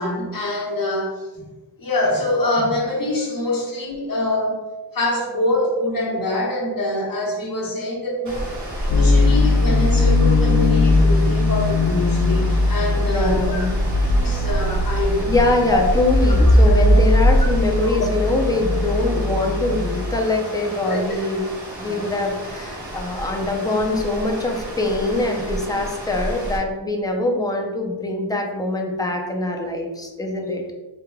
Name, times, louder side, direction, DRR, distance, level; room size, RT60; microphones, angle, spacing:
voice 1, 0.0-1.5 1.8-4.7 4.9-8.5 8.8-13.7 14.1-15.6 16.7-16.8 17.8-18.0 18.8-19.2 20.8-21.0 21.9-22.1, left 1 dB, 50° left, -3 dB, 1.2 m, -25 dB
sound 1, 8.2-26.6, equal, 40° right, 1.2 m, -24 dB
sound 2, 8.9-20.1, left 3 dB, 85° left, 0.5 m, -20 dB
voice 2, 13.0-13.7 15.2-21.4 21.8-30.6, left 2 dB, 10° left, 1 dB, 0.5 m, -23 dB
4.4 x 3.7 x 2.3 m, 1.1 s
wide cardioid pair, 120°, 44 cm